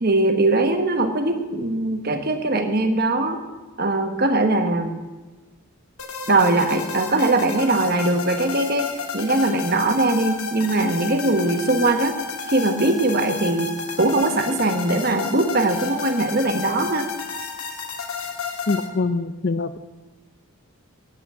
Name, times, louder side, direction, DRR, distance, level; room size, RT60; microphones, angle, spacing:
voice 1, 0.0-3.4 3.8-5.0 6.3-12.2 12.5-17.1, right 2 dB, 45° right, 7 dB, 1.2 m, -21 dB
sound 1, 6.0-18.9, left 5 dB, 80° left, 1.7 m, -32 dB
voice 2, 18.7-19.8, left 3 dB, 45° left, 13 dB, 0.5 m, -24 dB
18.0 x 6.1 x 7.5 m, 1.2 s
head